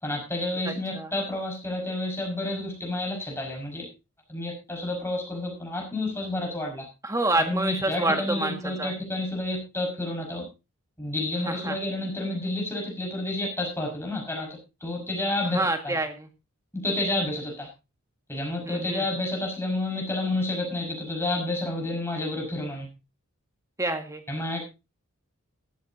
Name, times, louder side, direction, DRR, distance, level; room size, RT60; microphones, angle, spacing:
voice 1, 0.0-3.9 4.3-6.9 7.5-10.5 11.0-14.5 14.8-15.6 15.8-15.9 16.7-17.7 18.3-22.9 24.3-24.6, left 2 dB, 10° left, 1 dB, 5.6 m, -30 dB
voice 2, 0.7-1.1 7.0-8.9 11.5-11.8 15.5-16.3 18.7-19.0 23.8-24.2, right 2 dB, 15° right, 6 dB, 1.8 m, -28 dB
15.5 x 13.0 x 2.8 m, 0.28 s
head